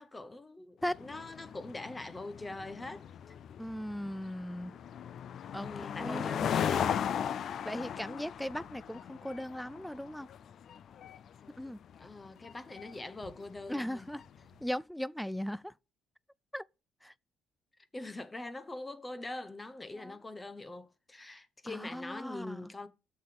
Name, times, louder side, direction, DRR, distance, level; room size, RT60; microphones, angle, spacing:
voice 1, 0.0-3.3 5.6-7.0 12.0-14.1 17.9-22.9, left 2 dB, 20° left, 1.0 m, -43 dB
sound 1, 0.9-14.4, left 8 dB, 60° left, 0.5 m, -38 dB
voice 2, 3.6-4.8 5.5-6.3 7.6-10.3 11.6-11.8 13.7-14.2 14.6-15.7 16.5-16.6 17.0-17.1 19.9-20.1 21.7-22.7, equal, 5° left, 0.4 m, -38 dB
sound 2, 8.2-9.1 13.2-13.6 14.2-14.9, right 2 dB, 75° right, 1.4 m, -60 dB
7.0 x 6.2 x 6.0 m
cardioid pair, 90°, 0 cm